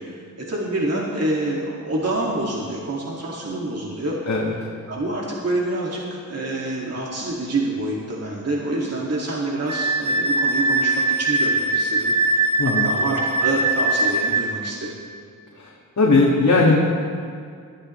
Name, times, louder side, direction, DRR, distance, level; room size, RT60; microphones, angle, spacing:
voice 1, 0.0-4.2 4.9-15.0, right 2 dB, 45° right, -4 dB, 2.3 m, -27 dB
Wind instrument woodwind instrument, 9.7-14.4, right 2 dB, 65° right, 1.6 m, -21 dB
voice 2, 15.6-16.8, left 3 dB, 55° left, -3 dB, 2.0 m, -18 dB
20.5 x 13.5 x 3.2 m, 2.3 s
cardioid pair, 75°, 34 cm